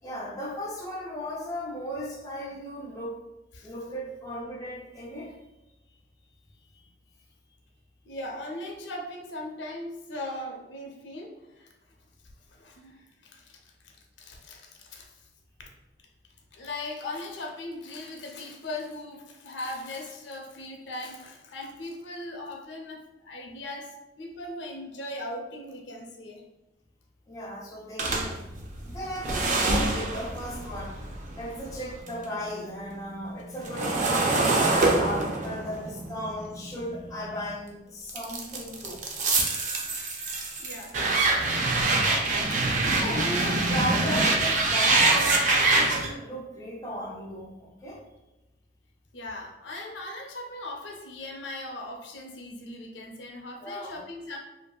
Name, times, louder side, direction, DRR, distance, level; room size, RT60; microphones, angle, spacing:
voice 1, 0.0-3.2 3.6-5.3 6.6-6.9 27.3-28.4 28.8-39.0 42.9-48.0 53.6-54.0, equal, 20° left, -2 dB, 0.4 m, -36 dB
voice 2, 8.1-11.7 12.5-13.6 13.8-15.3 16.5-26.4 40.6-41.0 41.7-42.6 49.1-54.4, left 1 dB, 85° left, 1 dB, 0.5 m, -39 dB
sound 1, 28.0-32.2 32.6-37.5 38.1-46.1, right 3 dB, 45° right, 0.4 m, -25 dB
2.7 x 2.5 x 2.2 m, 0.97 s
head